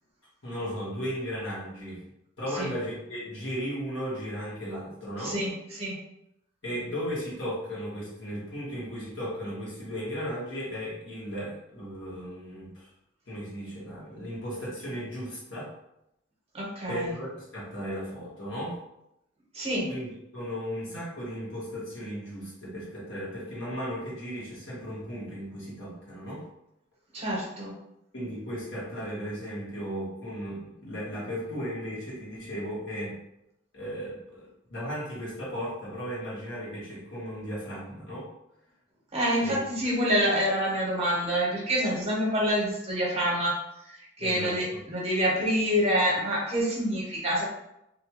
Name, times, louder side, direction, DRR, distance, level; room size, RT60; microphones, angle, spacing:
voice 1, 0.4-2.0 2.4-5.4 6.6-12.9 13.3-15.7 16.9-18.8 19.9-26.5 28.1-33.2 33.7-38.3 39.4-39.8 44.2-44.8, equal, 70° left, -6 dB, 1.2 m, -36 dB
voice 2, 5.2-6.0 16.5-17.1 19.5-19.9 27.1-27.7 39.1-43.6 43.8-47.4, equal, 35° right, -4 dB, 0.8 m, -27 dB
2.6 x 2.3 x 2.8 m, 0.83 s
head